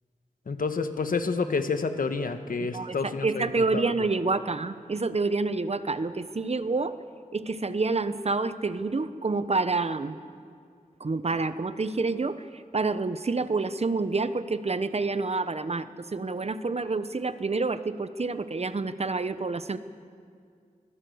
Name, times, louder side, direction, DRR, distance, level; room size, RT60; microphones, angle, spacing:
voice 1, 0.5-3.9, left 4 dB, 80° left, 8 dB, 1.4 m, -29 dB
voice 2, 2.7-7.0 7.3-10.2 11.0-19.8, right 3 dB, 50° right, 12 dB, 0.9 m, -28 dB
24.0 x 16.5 x 8.0 m, 2.2 s
wide cardioid pair, 75°, 14 cm